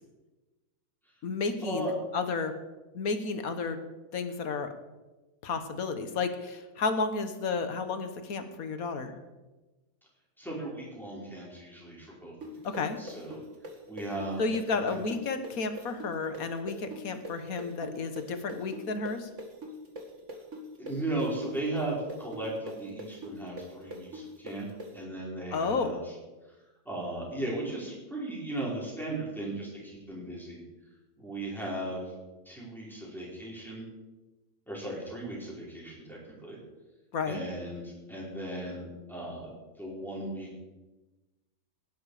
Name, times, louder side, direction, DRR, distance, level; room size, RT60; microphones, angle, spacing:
voice 1, 1.2-2.5 2.9-3.8 4.1-4.7 5.4-9.1 12.6-13.0 14.4-19.3 25.5-25.9 37.1-37.4, left 4 dB, 75° left, 8 dB, 1.7 m, -32 dB
voice 2, 10.4-12.3 12.7-13.4 13.9-14.4 14.7-15.0 20.8-24.7 24.9-26.1 26.8-30.6 31.2-32.0 32.4-33.8 34.7-36.6 37.3-39.5 39.8-40.6, right 1 dB, ahead, -5 dB, 4.9 m, -36 dB
sound 1, 12.4-20.0 20.3-24.9, right 1 dB, 55° right, 2.3 m, -41 dB
17.5 x 10.5 x 5.0 m, 1.1 s
omnidirectional pair, 1.5 m